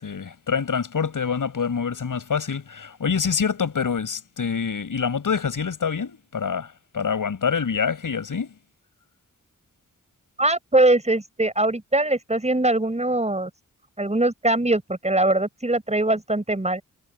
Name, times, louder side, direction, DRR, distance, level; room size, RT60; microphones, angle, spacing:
voice 1, 0.0-8.5, left 6 dB, 75° left, 7.0 m, -26 dB
voice 2, 10.4-13.5 14.0-16.8, right 2 dB, 20° right, 6.3 m, -22 dB
cardioid pair, 65°, 32 cm